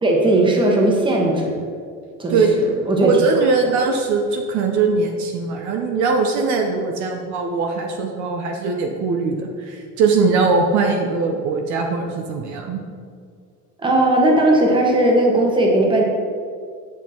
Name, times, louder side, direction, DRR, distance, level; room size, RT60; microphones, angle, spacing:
voice 1, 0.0-1.6 2.2-3.1 13.8-16.0, right 1 dB, 15° right, -1 dB, 1.4 m, -17 dB
voice 2, 3.0-12.8, right 4 dB, 60° right, 3 dB, 0.9 m, -20 dB
9.0 x 5.8 x 4.4 m, 2.2 s
cardioid pair, 145°, 33 cm